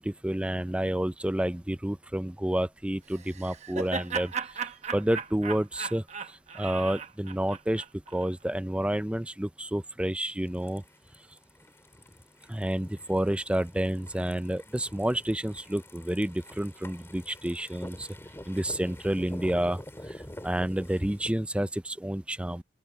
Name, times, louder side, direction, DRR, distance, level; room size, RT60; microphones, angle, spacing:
voice 1, 0.0-4.7 4.9-7.8 8.1-10.8 12.5-18.1 18.5-19.8 20.1-22.6, right 1 dB, 5° right, 0.5 m, -30 dB
Laughter, 3.1-8.3, right 6 dB, 40° right, 1.0 m, -37 dB
sound 1, 10.5-21.3, left 1 dB, 15° left, 2.6 m, -47 dB
open air
head